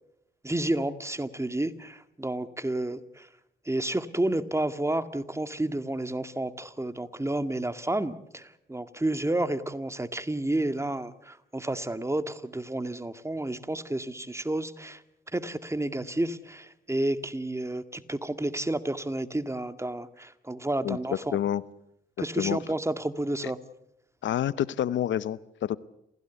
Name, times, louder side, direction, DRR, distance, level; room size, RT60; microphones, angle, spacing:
voice 1, 0.4-3.3 3.7-15.0 15.3-21.4 22.2-23.6, right 1 dB, 15° right, 10 dB, 1.9 m, -30 dB
voice 2, 20.8-21.6 22.4-22.6 24.2-25.8, left 11 dB, 75° left, 18 dB, 0.8 m, -28 dB
28.0 x 16.0 x 8.3 m, 0.82 s
supercardioid pair, 50°, 19 cm